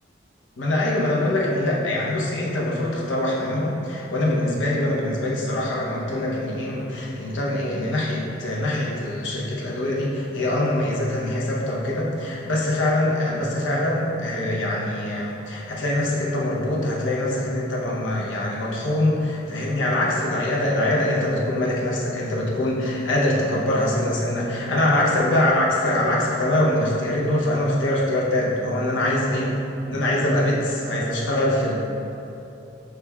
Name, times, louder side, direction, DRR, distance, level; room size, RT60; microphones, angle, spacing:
voice 1, 0.6-29.5 29.9-31.8, left 1 dB, 80° left, -4 dB, 0.7 m, -23 dB
5.9 x 3.4 x 2.3 m, 2.8 s
head